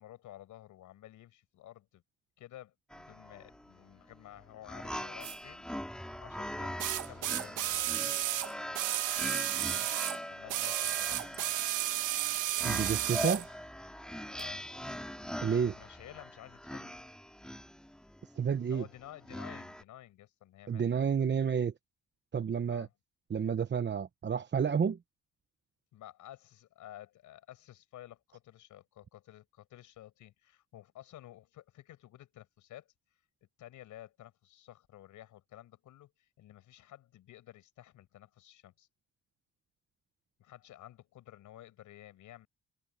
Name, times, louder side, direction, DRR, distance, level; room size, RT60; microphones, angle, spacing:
voice 1, 0.0-2.0 2.4-7.8 10.3-11.6 14.3-14.7 15.7-17.0 18.6-20.8 22.7-22.9 25.9-32.9 33.6-38.9 40.4-42.5, left 13 dB, 80° left, 6.3 m, -53 dB
sound 1, 2.9-19.8, equal, 5° left, 2.5 m, -42 dB
sound 2, 5.2-5.3 6.8-10.2 10.5-13.4 14.4-14.5, right 14 dB, 85° right, 1.3 m, -33 dB
voice 2, 12.6-13.5 15.4-15.7 18.4-18.8 20.7-21.7 22.3-22.9 23.3-25.0, right 7 dB, 35° right, 1.0 m, -30 dB
cardioid pair, 90°, 30 cm